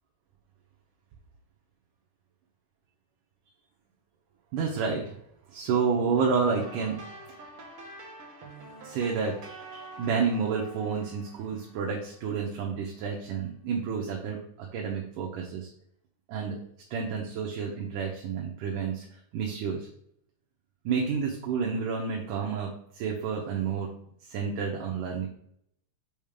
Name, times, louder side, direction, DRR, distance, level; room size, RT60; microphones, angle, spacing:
voice 1, 4.5-5.1 5.5-7.0 8.8-15.7 16.3-16.6 16.9-19.0 19.3-19.9 20.9-23.9 24.3-25.3, right 5 dB, 80° right, -1 dB, 2.5 m, -30 dB
sound 1, 6.6-12.5, right 2 dB, 50° right, 2.3 m, -47 dB
7.1 x 5.7 x 3.6 m, 0.69 s
omnidirectional pair, 3.8 m